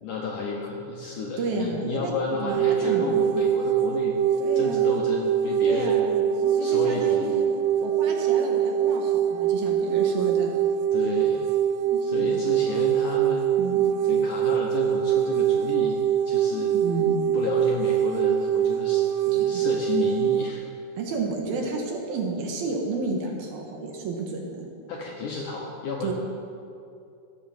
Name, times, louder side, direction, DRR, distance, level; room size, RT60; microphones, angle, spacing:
voice 1, 0.0-4.2 4.6-6.0 6.6-7.4 10.9-11.5 12.0-13.4 14.1-16.0 16.3-16.8 17.3-20.6 24.9-26.1, left 4 dB, 70° left, -1 dB, 2.0 m, -31 dB
voice 2, 1.4-3.2 4.4-4.8 5.7-7.5 7.8-10.5 11.9-12.4 13.6-13.8 16.7-17.2 19.4-19.6 21.0-24.7 26.0-26.1, right 4 dB, 65° right, 0 dB, 3.1 m, -31 dB
sound 1, 2.5-20.5, right 9 dB, 85° right, 2.3 m, -23 dB
14.0 x 8.6 x 7.1 m, 2.5 s
omnidirectional pair, 4.8 m